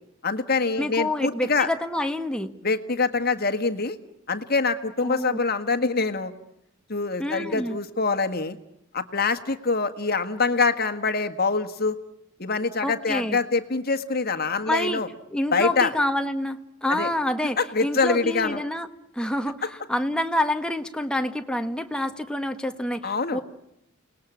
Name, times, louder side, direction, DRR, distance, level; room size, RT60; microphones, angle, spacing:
voice 1, 0.2-1.7 2.6-4.0 4.3-6.3 6.9-8.6 8.9-12.0 12.4-15.1 15.5-15.9 16.9-17.1 17.6-18.6 23.0-23.4, left 4 dB, 45° left, 9 dB, 1.7 m, -25 dB
voice 2, 0.8-2.5 5.0-5.4 7.2-7.8 12.8-13.4 14.7-15.0 15.3-18.9 19.1-23.4, left 1 dB, 5° left, 7 dB, 1.4 m, -27 dB
30.0 x 20.0 x 8.6 m, 0.81 s
head